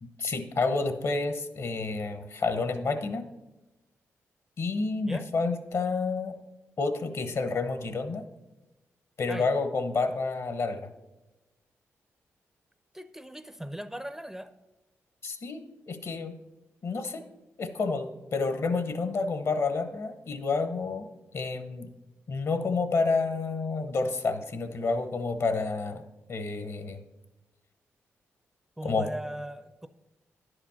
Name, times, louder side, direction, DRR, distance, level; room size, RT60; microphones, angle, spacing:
voice 1, 0.0-3.2 4.6-6.3 6.8-8.2 9.2-10.9 15.2-15.6 15.9-16.4 16.8-17.2 17.6-21.1 21.3-21.9 22.3-27.0 28.8-29.1, left 4 dB, 60° left, 9 dB, 0.9 m, -29 dB
voice 2, 12.9-14.5 28.8-29.9, right 1 dB, 5° right, 11 dB, 0.4 m, -38 dB
10.5 x 5.0 x 5.7 m, 1.1 s
cardioid pair, 60°, 5 cm